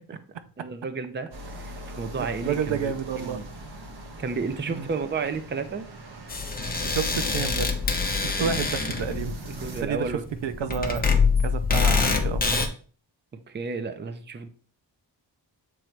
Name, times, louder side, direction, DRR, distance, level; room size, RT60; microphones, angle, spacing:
voice 1, 0.6-1.3 1.6-3.4 4.2-5.9 8.4-8.6 9.5-10.2 13.5-14.5, right 4 dB, 25° right, 0.5 m, -32 dB
sound 1, 1.3-9.8, right 1 dB, 60° right, 1.3 m, -42 dB
voice 2, 2.2-3.4 4.7-4.9 6.8-7.7 8.1-9.4 9.8-11.0 11.4-12.7, right 7 dB, 80° right, 0.7 m, -30 dB
sound 2, 6.3-12.7, left 4 dB, 20° left, 0.7 m, -25 dB
7.7 x 3.1 x 4.5 m
wide cardioid pair, 170°, 44 cm